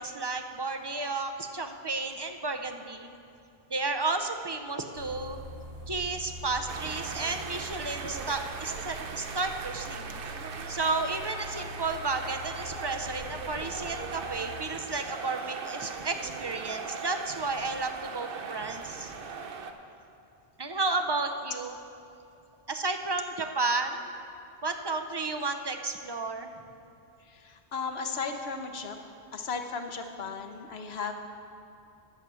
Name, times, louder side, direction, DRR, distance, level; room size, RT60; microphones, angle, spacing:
voice 1, 0.0-3.1 3.7-5.4 5.9-10.2 10.7-19.1 20.6-21.7 22.7-24.1 24.6-26.5, right 3 dB, 35° right, 5 dB, 0.4 m, -32 dB
sound 1, 4.9-14.5, equal, 85° right, 1.6 m, -44 dB
sound 2, 6.7-19.7, right 5 dB, 60° right, 0.9 m, -39 dB
voice 2, 27.3-29.0 29.3-31.1, left 5 dB, 70° left, 5 dB, 1.1 m, -35 dB
11.0 x 8.1 x 6.2 m, 2.6 s
omnidirectional pair, 1.1 m